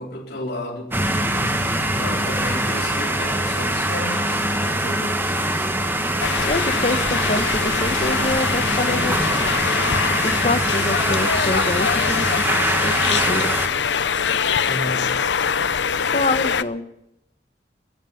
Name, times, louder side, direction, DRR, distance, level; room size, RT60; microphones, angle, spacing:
voice 1, 0.0-4.4 7.2-7.3 14.6-15.3, left 1 dB, 65° left, -3 dB, 4.4 m, -32 dB
sound 1, 0.9-13.7, right 1 dB, 15° right, 1.6 m, -23 dB
voice 2, 4.8-5.1 6.5-9.2 10.2-12.5 12.8-13.6 16.0-16.8, left 2 dB, 40° left, 10 dB, 1.2 m, -26 dB
sound 2, 6.2-16.6, left 7 dB, 90° left, 0.7 m, -23 dB
16.5 x 14.0 x 5.9 m, 0.82 s
head